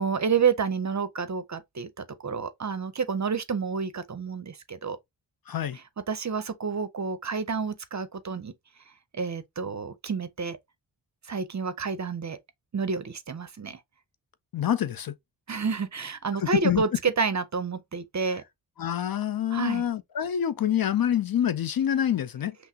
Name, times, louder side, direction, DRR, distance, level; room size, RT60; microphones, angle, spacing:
voice 1, 0.0-5.0 6.1-8.5 9.1-10.6 11.3-12.4 12.7-13.8 15.5-18.4 19.5-19.8, right 5 dB, 40° right, 0.6 m, -29 dB
voice 2, 5.5-5.8 14.5-15.1 16.4-16.8 18.8-22.6, left 10 dB, 50° left, 0.5 m, -26 dB
5.6 x 2.0 x 2.7 m
cardioid pair, 65°, 47 cm